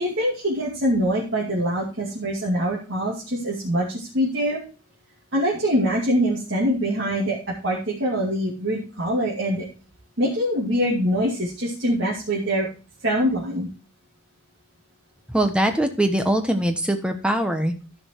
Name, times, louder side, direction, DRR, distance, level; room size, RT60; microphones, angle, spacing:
voice 1, 0.0-4.6 5.3-9.7 10.2-12.7 13.0-13.7, equal, 60° right, -6 dB, 2.4 m, -24 dB
voice 2, 15.3-17.7, right 1 dB, 5° right, 6 dB, 1.0 m, -22 dB
14.0 x 5.2 x 4.5 m, 0.34 s
head